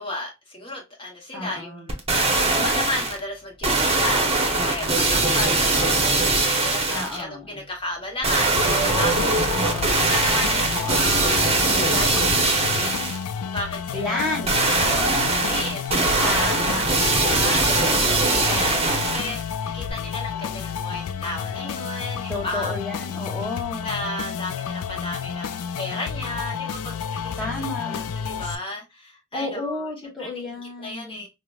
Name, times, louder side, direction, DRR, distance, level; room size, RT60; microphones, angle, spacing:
voice 1, 0.0-2.0 2.5-9.4 9.9-12.9 13.4-14.5 14.8-16.5 17.1-22.7 23.8-27.4 27.8-29.9 30.2-30.5 30.8-31.3, left 1 dB, 25° left, 0.9 m, -33 dB
voice 2, 1.3-1.9 4.6-5.1 6.9-7.6 9.5-10.1 10.7-11.2 13.9-14.6 16.2-16.8 17.5-18.0 18.4-19.1 22.3-23.9 27.4-28.0 29.3-31.2, left 2 dB, ahead, 1.0 m, -32 dB
sound 1, 1.9-3.2 3.6-7.2 8.2-13.2 14.5-19.4 19.9-20.0, right 3 dB, 30° right, 0.8 m, -21 dB
sound 2, 8.6-28.5, left 7 dB, 85° left, 0.4 m, -31 dB
4.8 x 2.1 x 2.3 m
head